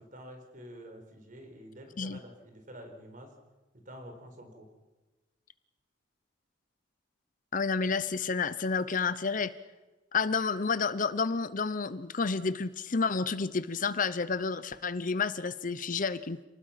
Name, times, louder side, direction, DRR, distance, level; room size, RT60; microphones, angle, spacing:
voice 1, 0.0-3.3 3.7-4.7, equal, 40° right, 5 dB, 4.3 m, -48 dB
voice 2, 7.5-9.5 10.1-16.4, left 4 dB, 45° left, 15 dB, 0.7 m, -30 dB
29.5 x 19.5 x 5.8 m, 1.2 s
head